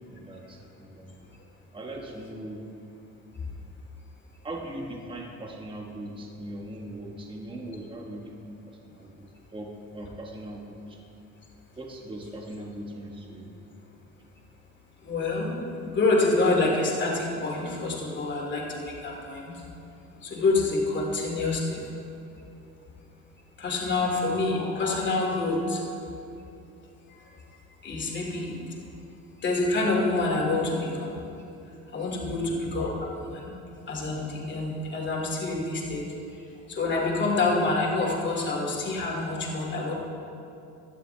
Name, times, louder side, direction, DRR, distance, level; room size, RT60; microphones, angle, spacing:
voice 1, 0.1-1.1 1.7-2.6 4.4-11.0 11.8-13.5 32.3-32.5, right 1 dB, 15° right, 0 dB, 1.3 m, -40 dB
voice 2, 15.0-19.6 20.2-21.9 23.6-25.8 27.8-28.6 29.4-31.1 31.9-33.5 33.9-36.0 36.7-39.9, left 3 dB, 40° left, -2 dB, 2.7 m, -27 dB
16.5 x 12.0 x 3.4 m, 2.7 s
cardioid pair, 130°, 29 cm